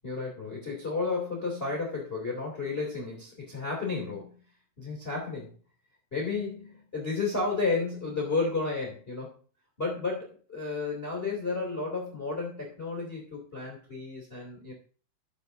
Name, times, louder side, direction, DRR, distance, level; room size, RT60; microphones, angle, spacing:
voice 1, 0.0-4.3 4.8-5.5 6.1-9.4 9.8-14.7, left 3 dB, 40° left, -1 dB, 0.8 m, -32 dB
14.0 x 6.9 x 2.6 m, 0.40 s
omnidirectional pair, 5.8 m